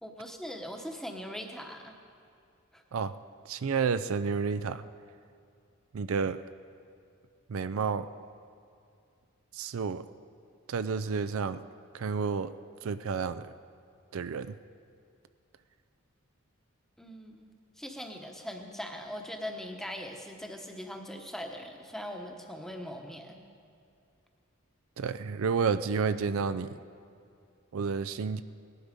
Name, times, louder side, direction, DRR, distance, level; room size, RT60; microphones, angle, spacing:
voice 1, 0.0-1.9 2.7-2.8 17.0-17.5 17.8-23.4, equal, ahead, 3 dB, 1.0 m, -41 dB
voice 2, 3.5-4.8 5.9-6.4 7.5-8.1 9.5-10.0 10.7-11.6 11.9-12.5 12.8-13.5 14.1-14.5 25.0-26.8 27.7-28.4, right 5 dB, 70° right, 13 dB, 0.4 m, -30 dB
18.0 x 11.5 x 5.2 m, 2.4 s
head